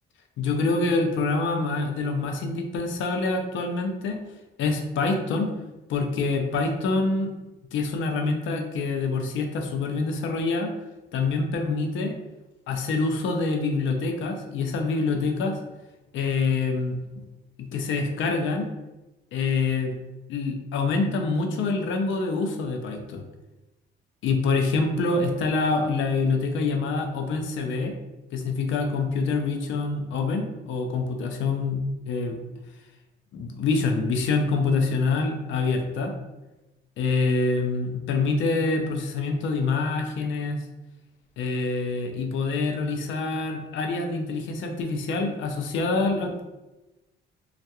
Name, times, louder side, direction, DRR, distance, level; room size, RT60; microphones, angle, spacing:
voice 1, 0.4-4.2 4.6-5.5 5.9-7.3 7.7-10.7 11.1-12.2 12.7-15.6 16.1-17.0 17.6-18.7 19.3-19.9 20.3-23.2 24.2-28.0 28.3-32.4 33.3-36.1 37.0-40.6 41.4-46.4, left 3 dB, 75° left, 4 dB, 0.5 m, -26 dB
2.4 x 2.2 x 2.8 m, 1.0 s
cardioid pair, 90°, 20 cm